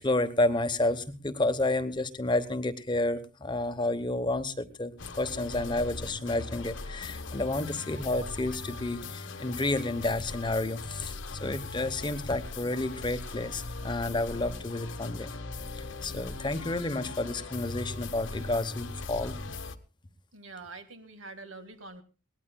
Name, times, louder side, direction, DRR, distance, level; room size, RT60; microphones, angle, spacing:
voice 1, 0.0-15.4 16.0-19.4, left 2 dB, 20° left, 10 dB, 0.9 m, -30 dB
sound 1, 5.0-19.8, left 3 dB, 65° left, 1.0 m, -40 dB
voice 2, 20.3-22.0, right 3 dB, 70° right, 8 dB, 1.9 m, -45 dB
21.5 x 18.5 x 2.3 m, 0.32 s
head